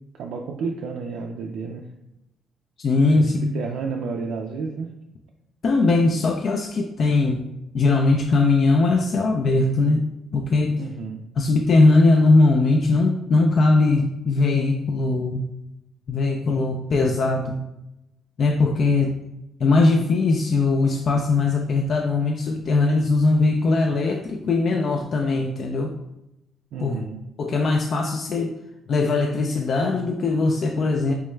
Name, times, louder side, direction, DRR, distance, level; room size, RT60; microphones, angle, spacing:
voice 1, 0.1-1.9 3.1-4.9 10.8-11.2 26.7-27.2, right 5 dB, 85° right, 1 dB, 0.3 m, -31 dB
voice 2, 2.8-3.5 5.6-7.4 7.7-10.0 10.3-10.7 11.4-15.5 16.1-17.6 18.4-19.1 19.6-25.9 26.8-27.0 27.4-28.5 28.9-31.1, left 3 dB, 55° left, 2 dB, 0.3 m, -20 dB
4.5 x 2.2 x 3.1 m, 0.88 s
cardioid pair, 90°, 0 cm